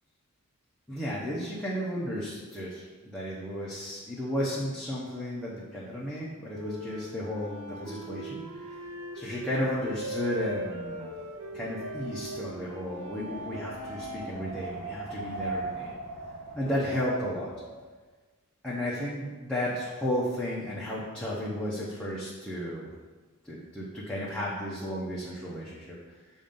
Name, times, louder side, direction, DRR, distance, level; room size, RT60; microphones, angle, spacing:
voice 1, 0.9-2.9 3.1-8.8 9.1-11.1 11.5-15.9 16.5-17.5 18.6-22.9 23.4-26.0, equal, 5° left, -7 dB, 0.7 m, -33 dB
sound 1, 6.5-14.3, right 1 dB, 85° right, 0.6 m, -40 dB
Wind, 8.6-17.9, right 2 dB, 50° right, 1.6 m, -41 dB
7.0 x 2.6 x 5.2 m, 1.3 s
head